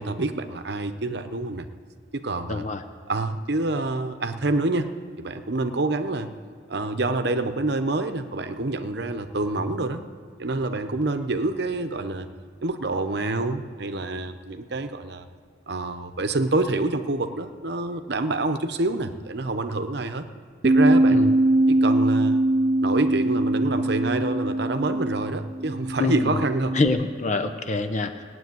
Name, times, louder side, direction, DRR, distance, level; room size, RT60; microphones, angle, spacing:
voice 1, 0.0-1.7 2.1-2.6 3.1-4.9 5.2-6.3 6.7-10.0 10.4-12.3 12.6-15.3 15.7-20.3 20.6-21.2 21.7-22.4 22.8-26.7, right 2 dB, 55° right, 9 dB, 0.8 m, -27 dB
voice 2, 2.5-2.8 21.1-21.3 26.0-26.4 26.7-28.2, left 3 dB, 35° left, 8 dB, 0.8 m, -25 dB
Bass guitar, 20.6-26.9, right 1 dB, 30° right, 0.5 m, -22 dB
17.0 x 7.8 x 9.4 m, 2.1 s
head